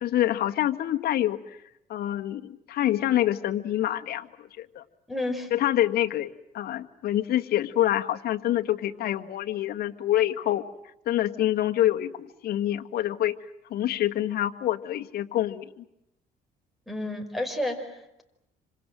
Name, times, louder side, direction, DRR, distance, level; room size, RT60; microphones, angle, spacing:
voice 1, 0.0-1.6 1.9-4.8 5.5-10.6 11.1-13.4 13.7-15.8, left 12 dB, 65° left, 5 dB, 1.8 m, -26 dB
voice 2, 5.1-5.5 16.9-18.2, left 1 dB, ahead, 8 dB, 5.1 m, -31 dB
27.5 x 26.5 x 7.7 m, 0.83 s
cardioid pair, 110°, 17 cm